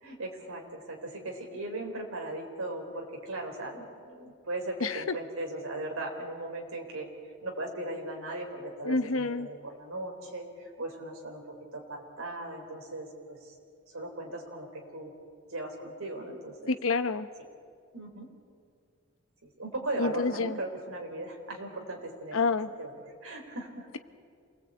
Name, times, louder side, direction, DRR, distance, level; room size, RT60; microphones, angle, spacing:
voice 1, 0.0-7.1 7.4-10.5 10.8-13.5 13.9-15.1 15.5-16.8 17.9-18.3 19.6-22.4 22.8-23.9, right 2 dB, 80° right, 2 dB, 4.2 m, -38 dB
voice 2, 8.8-9.5 16.7-17.3 20.0-20.6 22.3-22.7, left 3 dB, 75° left, 10 dB, 1.1 m, -28 dB
27.5 x 19.0 x 8.7 m, 2.2 s
head